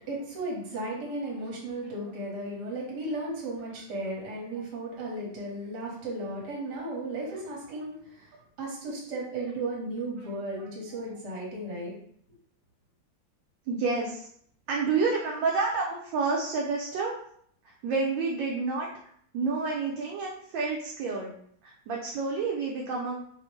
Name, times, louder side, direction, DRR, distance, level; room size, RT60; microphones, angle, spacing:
voice 1, 0.1-8.3 8.6-11.9, right 2 dB, 60° right, -3 dB, 1.5 m, -35 dB
voice 2, 13.7-14.3 14.7-17.1 17.6-18.9 19.3-21.3 21.6-23.2, right 4 dB, 75° right, -2 dB, 1.2 m, -29 dB
3.3 x 2.0 x 3.1 m, 0.65 s
omnidirectional pair, 2.1 m